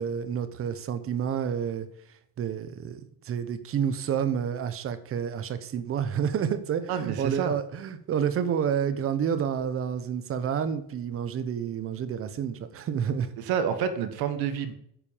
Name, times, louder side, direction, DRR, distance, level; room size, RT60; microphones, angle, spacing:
voice 1, 0.0-1.9 2.4-13.3, right 8 dB, 30° right, 12 dB, 1.1 m, -29 dB
voice 2, 6.9-7.5 13.4-14.7, right 8 dB, 55° right, 9 dB, 1.5 m, -28 dB
10.0 x 8.1 x 7.2 m, 0.70 s
cardioid pair, 165°, 43 cm